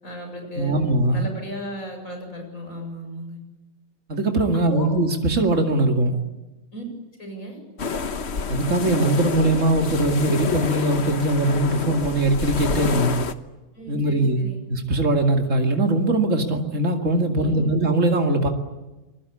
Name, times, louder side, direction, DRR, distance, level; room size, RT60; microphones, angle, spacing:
voice 1, 0.0-3.4 4.7-4.9 6.7-6.8 7.2-7.6 13.7-14.6 17.3-17.7, equal, 65° left, 4 dB, 8.1 m, -35 dB
voice 2, 0.6-1.3 4.1-6.2 8.5-13.1 13.9-18.5, right 2 dB, 55° right, 3 dB, 2.8 m, -21 dB
sound 1, 7.8-13.3, left 5 dB, 50° left, 1.3 m, -28 dB
28.0 x 21.0 x 8.5 m, 1.1 s
omnidirectional pair, 1.5 m